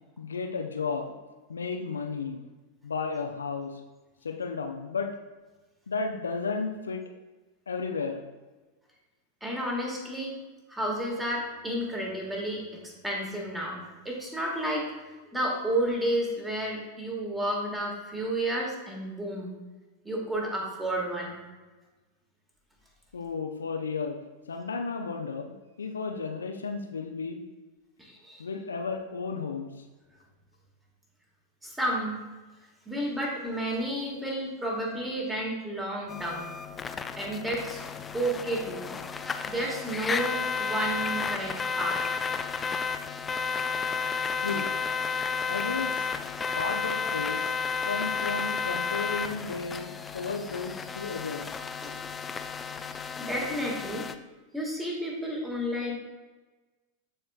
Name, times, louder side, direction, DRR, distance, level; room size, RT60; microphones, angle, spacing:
voice 1, 0.2-1.1 1.5-2.4 2.8-3.7 4.2-5.1 5.9-7.0 7.7-8.2 23.1-24.2 24.5-27.4 28.4-29.7 44.4-44.7 45.5-46.1 46.6-47.5 47.8-51.5, left 4 dB, 70° left, 4 dB, 0.5 m, -33 dB
voice 2, 9.4-10.4 10.7-14.8 15.3-19.5 20.1-21.3 28.0-28.4 31.6-32.2 32.9-36.5 37.2-37.8 38.1-38.9 39.5-42.2 51.8-51.9 53.2-54.1 54.5-55.9, right 1 dB, 10° right, -2 dB, 1.8 m, -31 dB
sound 1, 36.1-54.1, left 5 dB, 15° left, 0.4 m, -32 dB
13.0 x 4.4 x 2.3 m, 1.2 s
figure-of-eight pair, 90°, 0 cm